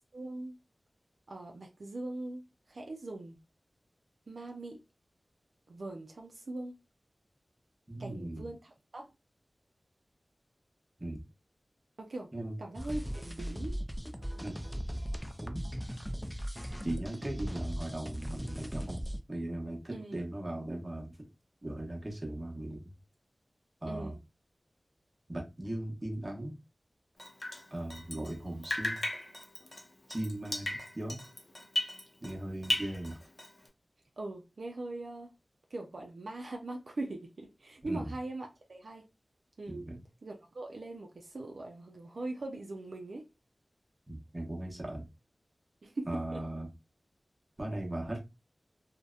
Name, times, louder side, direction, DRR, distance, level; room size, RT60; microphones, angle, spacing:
voice 1, 0.1-0.6 1.3-3.4 4.3-4.8 5.7-6.8 8.0-9.1 12.0-12.3 12.6-13.8 19.9-20.2 23.8-24.2 34.2-35.3 35.7-39.1 39.6-39.8 40.2-43.3 45.8-46.4, right 2 dB, 80° right, 0.4 m, -41 dB
voice 2, 7.9-8.5 11.0-11.2 12.3-12.6 14.4-14.6 15.4-15.6 16.8-19.0 19.3-21.2 21.6-22.9 23.8-24.1 25.3-26.5 27.7-29.0 30.1-31.2 32.2-33.2 37.8-38.1 39.7-40.0 44.1-45.1 46.1-46.7 47.6-48.2, right 1 dB, 30° right, 0.9 m, -38 dB
sound 1, 12.7-19.2, equal, ahead, 0.3 m, -38 dB
Drip, 27.2-28.4 28.6-32.4 32.6-33.7, left 1 dB, 50° left, 0.6 m, -36 dB
2.7 x 2.1 x 2.2 m
wide cardioid pair, 85°, 0 cm